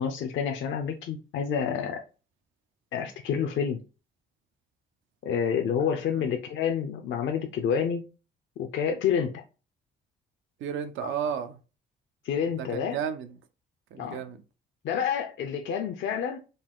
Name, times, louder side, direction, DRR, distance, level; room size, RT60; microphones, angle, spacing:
voice 1, 0.0-2.0 2.9-3.8 5.2-8.1 8.6-9.4 11.0-11.1 12.2-13.0 14.0-14.2 14.8-16.4, left 7 dB, 70° left, 0.5 m, -28 dB
voice 2, 10.6-11.6 12.5-13.4 13.9-14.4, right 8 dB, 80° right, 0.6 m, -33 dB
3.9 x 2.3 x 3.7 m
cardioid pair, 90°, 20 cm